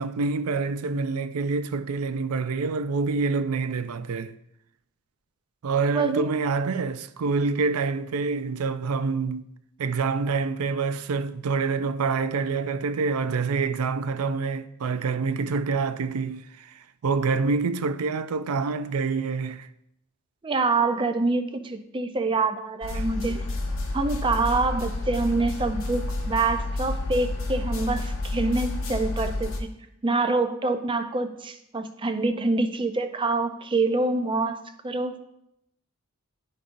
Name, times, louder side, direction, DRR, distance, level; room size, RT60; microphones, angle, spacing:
voice 1, 0.0-4.3 5.6-9.4 9.8-19.7 22.9-23.0, right 4 dB, 80° right, 0.4 m, -27 dB
voice 2, 5.8-6.3 20.4-23.4 23.9-29.7 30.0-34.6 34.8-35.2, right 3 dB, 25° right, 0.5 m, -26 dB
sound 1, 22.8-29.6, left 2 dB, 60° left, 1.0 m, -30 dB
11.0 x 5.2 x 2.6 m
head